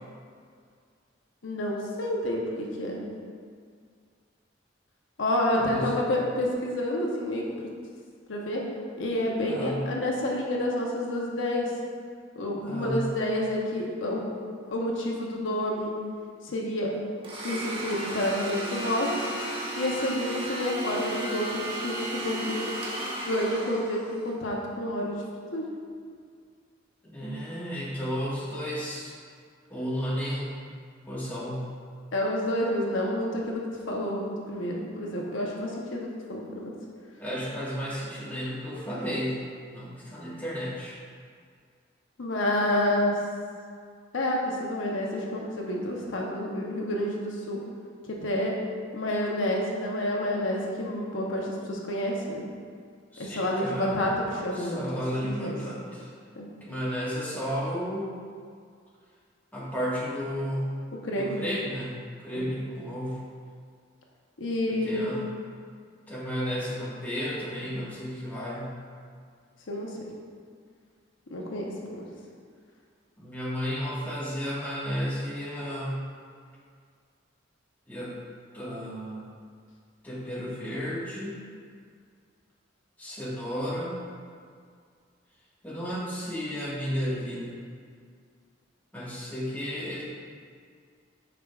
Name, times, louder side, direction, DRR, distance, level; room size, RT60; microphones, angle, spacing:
voice 1, 1.4-3.0 5.2-7.4 8.3-8.6 9.0-11.7 12.3-14.2 14.6-15.9 16.4-16.9 17.4-19.2 19.8-22.7 23.2-25.2 25.5-25.7 32.1-36.6 42.2-43.2 44.1-47.6 48.0-48.6 48.9-52.4 53.2-54.8 55.2-55.6 56.4-56.5 61.0-61.4 62.3-62.4 64.4-65.1 69.7-69.9 71.3-72.1, left 1 dB, 80° left, -2 dB, 0.9 m, -29 dB
voice 2, 5.6-5.9 9.4-9.8 12.6-13.0 20.9-21.0 27.0-29.2 29.7-30.6 31.0-31.7 37.2-39.4 39.7-41.0 53.1-54.0 54.5-56.1 56.6-58.1 59.5-60.8 61.1-63.2 64.7-65.2 66.1-68.8 73.2-76.0 77.9-78.1 78.5-79.3 80.0-81.4 83.0-84.0 85.6-87.6 88.9-90.0, equal, 10° left, -8 dB, 1.6 m, -33 dB
Domestic sounds home sounds, 17.2-24.3, right 1 dB, 30° right, 1.2 m, -34 dB
9.9 x 5.1 x 2.4 m, 2.1 s
head